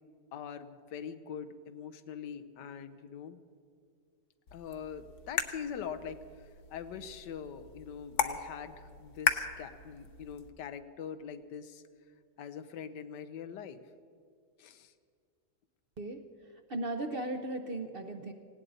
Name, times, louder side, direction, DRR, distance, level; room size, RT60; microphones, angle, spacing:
voice 1, 0.3-3.4 4.5-11.8 12.4-13.8 14.6-14.9, left 7 dB, 90° left, 11 dB, 1.4 m, -43 dB
sound 1, 4.5-10.5, left 6 dB, 55° left, 1.1 m, -37 dB
voice 2, 16.0-18.3, right 2 dB, 50° right, 4 dB, 0.7 m, -37 dB
18.5 x 17.0 x 4.0 m, 2.3 s
omnidirectional pair, 1.8 m